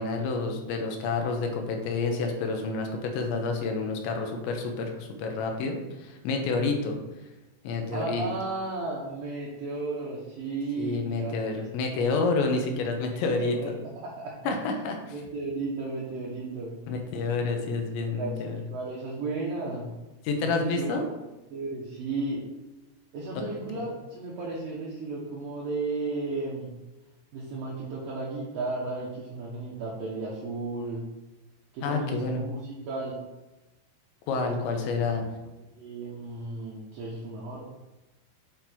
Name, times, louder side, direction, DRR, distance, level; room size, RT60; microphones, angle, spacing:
voice 1, 0.0-7.0 7.6-8.3 10.8-13.6 14.5-15.0 16.9-18.6 20.2-21.0 31.8-32.5 34.3-35.3, left 4 dB, 75° left, 3 dB, 3.1 m, -29 dB
voice 2, 7.9-11.9 12.7-14.3 15.1-16.7 18.2-19.9 20.3-20.9 21.5-22.4 23.1-26.7 27.3-31.0 31.7-33.2 35.8-37.6, right 3 dB, 70° right, -6 dB, 2.2 m, -34 dB
8.9 x 3.8 x 4.4 m, 1.1 s
omnidirectional pair, 5.4 m